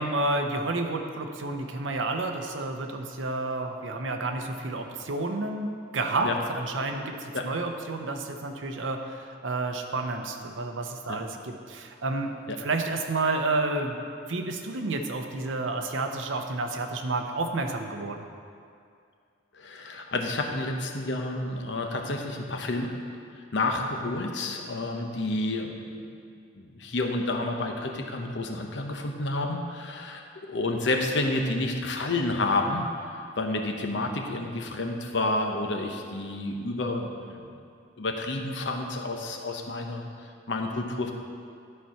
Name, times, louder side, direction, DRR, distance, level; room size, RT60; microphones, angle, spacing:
voice 1, 0.0-14.0 14.3-18.2, right 2 dB, 90° right, 4 dB, 0.8 m, -30 dB
voice 2, 19.5-22.9 23.3-25.8 26.5-37.5 38.0-41.1, left 2 dB, 70° left, 3 dB, 0.9 m, -30 dB
11.5 x 4.5 x 5.6 m, 2.4 s
head